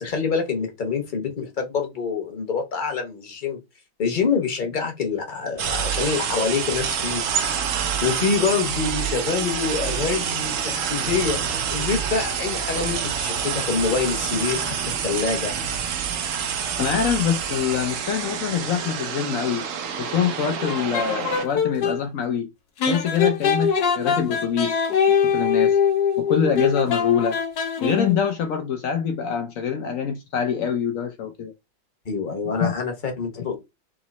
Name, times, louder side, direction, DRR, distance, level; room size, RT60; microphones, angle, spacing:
voice 1, 0.0-3.6 4.0-7.6 8.0-11.4 11.7-15.5 32.0-33.5, left 5 dB, 40° left, 0.8 m, -26 dB
sound 1, 5.6-21.5, right 7 dB, 80° right, 0.7 m, -27 dB
voice 2, 16.8-19.6 20.0-22.5 22.9-24.8 25.1-25.8 26.2-27.4 27.8-31.5 32.6-32.7 33.4-33.5, left 7 dB, 80° left, 0.7 m, -25 dB
sound 2, 20.6-22.0 22.8-28.3, left 7 dB, 60° left, 1.3 m, -22 dB
3.7 x 3.0 x 4.0 m
omnidirectional pair, 2.1 m